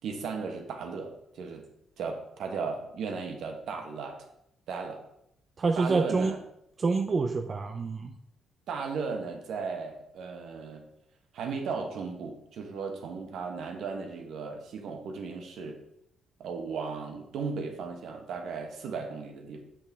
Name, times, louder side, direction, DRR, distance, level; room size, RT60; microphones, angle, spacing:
voice 1, 0.0-1.6 2.0-4.2 4.7-5.0 5.8-6.4 8.7-10.8 11.3-15.8 16.4-19.6, right 5 dB, 70° right, 3 dB, 1.3 m, -36 dB
voice 2, 5.6-6.3 6.8-8.1, right 4 dB, 30° right, 5 dB, 0.5 m, -27 dB
7.8 x 6.1 x 3.6 m, 0.76 s
cardioid pair, 150°, 0 cm